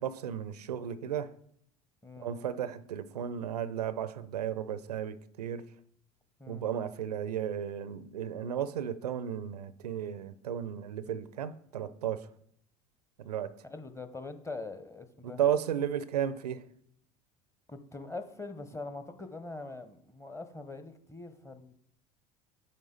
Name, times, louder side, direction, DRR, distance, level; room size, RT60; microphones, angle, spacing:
voice 1, 0.0-1.3 2.2-5.7 6.5-12.3 13.2-13.5 15.2-16.6, right 9 dB, 85° right, 0.5 m, -34 dB
voice 2, 13.7-15.4 17.7-21.7, left 3 dB, 15° left, 1.0 m, -43 dB
9.4 x 4.8 x 3.9 m
hypercardioid pair, 70°, 20 cm